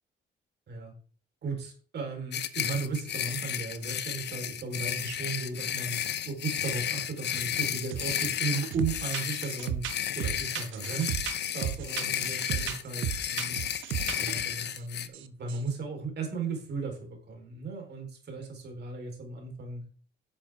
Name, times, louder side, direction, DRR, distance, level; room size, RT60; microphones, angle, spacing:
voice 1, 1.4-6.0 6.2-9.9 10.1-11.1 11.4-13.6 14.2-19.8, right 4 dB, 55° right, 3 dB, 4.2 m, -35 dB
sound 1, 2.3-15.1, left 10 dB, 60° left, 0.8 m, -33 dB
sound 2, 7.9-8.3 8.5-14.8 15.1-15.7, right 11 dB, 80° right, 0.8 m, -35 dB
11.0 x 7.2 x 3.6 m, 0.39 s
cardioid pair, 90°, 20 cm